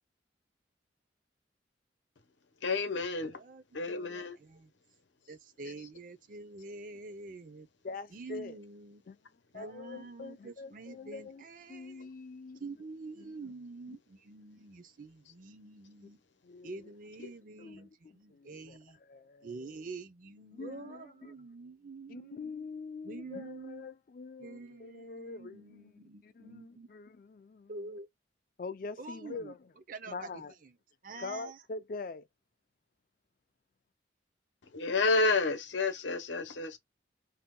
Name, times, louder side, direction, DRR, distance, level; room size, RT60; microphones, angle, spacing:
voice 1, 2.6-3.4 3.7-4.4 34.7-36.8, left 3 dB, 80° left, 0.7 m, -30 dB
voice 2, 3.3-4.7 5.3-7.7 8.1-9.0 9.5-12.1 12.6-16.2 16.6-19.0 19.4-22.4 23.0-23.9 24.4-26.9 27.7-28.1 29.0-29.5 29.9-30.8 31.0-31.6, right 3 dB, 45° right, 0.5 m, -47 dB
voice 3, 7.8-8.6 9.1-9.2 9.5-11.4 11.7-12.6 13.2-13.5 13.9-14.0 16.4-16.8 17.6-17.9 18.3-18.8 19.1-19.7 20.5-21.3 22.1-25.9 26.2-27.7 28.6-29.6 30.1-30.5 31.2-32.2, left 4 dB, 45° left, 0.3 m, -44 dB
2.7 x 2.2 x 3.6 m
head